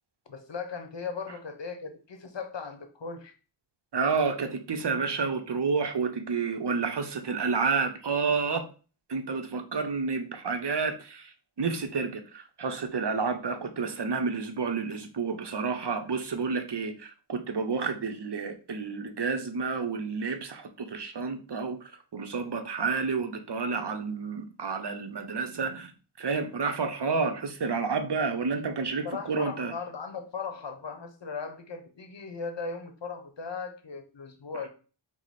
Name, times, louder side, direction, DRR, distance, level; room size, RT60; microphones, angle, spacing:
voice 1, 0.3-3.3 29.0-34.7, left 5 dB, 60° left, 7 dB, 0.7 m, -38 dB
voice 2, 3.9-8.7 9.1-25.9 26.2-29.7, right 5 dB, 55° right, 7 dB, 0.6 m, -30 dB
4.6 x 2.0 x 4.1 m, 0.36 s
wide cardioid pair, 45°, 48 cm